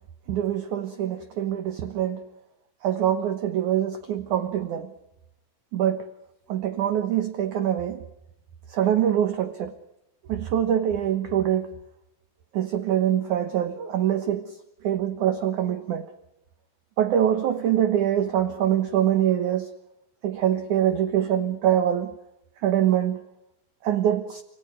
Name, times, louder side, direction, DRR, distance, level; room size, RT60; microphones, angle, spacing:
voice 1, 0.3-2.2 2.8-4.9 5.7-6.1 6.5-8.0 8.7-9.8 10.3-11.7 12.5-14.6 14.8-16.1 17.0-19.7 20.2-22.2 22.6-23.2 23.8-24.4, right 10 dB, 65° right, 8 dB, 2.2 m, -24 dB
29.5 x 18.0 x 9.8 m, 0.90 s
omnidirectional pair, 4.7 m